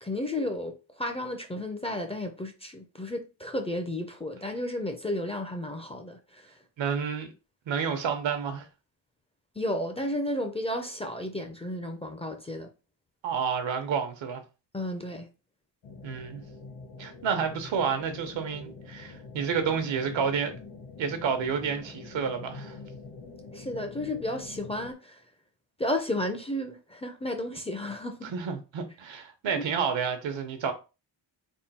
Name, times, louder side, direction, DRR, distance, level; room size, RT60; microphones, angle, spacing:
voice 1, 0.0-6.5 9.6-12.7 14.7-15.3 23.5-25.2 25.8-28.3 29.6-29.7, left 1 dB, 15° left, 0.4 m, -33 dB
voice 2, 6.8-7.3 7.7-8.7 13.2-14.4 16.0-16.4 17.0-20.6 21.0-22.8 28.3-30.7, right 6 dB, 85° right, 1.0 m, -30 dB
sound 1, 15.8-24.9, left 4 dB, 65° left, 1.0 m, -45 dB
3.6 x 2.2 x 4.1 m
wide cardioid pair, 145°, 45 cm